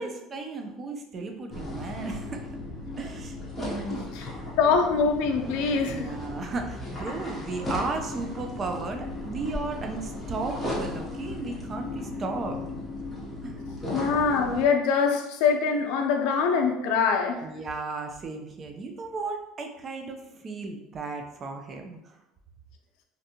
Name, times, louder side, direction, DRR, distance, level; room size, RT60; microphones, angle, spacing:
voice 1, 0.0-2.5 3.0-4.1 5.8-12.6 13.4-13.5 17.4-22.2, right 3 dB, 30° right, 4 dB, 0.4 m, -35 dB
sound 1, 1.5-14.6, left 2 dB, 10° left, 0.8 m, -36 dB
voice 2, 4.6-6.1 13.9-17.4, left 5 dB, 75° left, 3 dB, 0.4 m, -24 dB
2.5 x 2.2 x 2.8 m, 0.91 s
cardioid pair, 135°, 0 cm